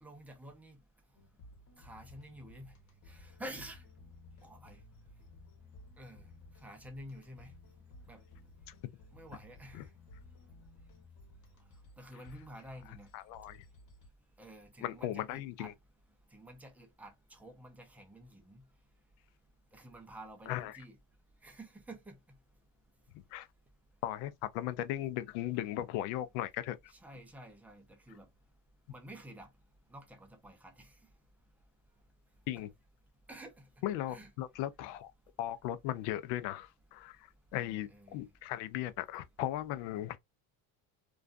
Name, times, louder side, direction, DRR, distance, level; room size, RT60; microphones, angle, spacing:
voice 1, 0.0-0.8 1.8-2.7 3.1-3.8 4.4-4.8 6.0-6.2 6.6-7.5 8.1-8.2 9.1-9.9 12.0-13.1 14.4-15.7 16.3-18.6 19.7-21.0 21.4-22.1 26.9-28.3 28.9-29.5 29.9-30.9 32.6-32.7 33.3-33.6 34.1-34.3 37.5-38.2, right 1 dB, 5° right, 0.4 m, -50 dB
sound 1, 1.1-14.1, left 2 dB, 45° left, 1.1 m, -57 dB
voice 2, 13.1-13.6 14.8-15.7 20.5-20.7 23.3-23.5 24.0-26.8 32.5-32.7 33.8-35.1 35.4-40.2, left 13 dB, 80° left, 0.6 m, -37 dB
2.4 x 2.3 x 2.4 m
cardioid pair, 125°, 42 cm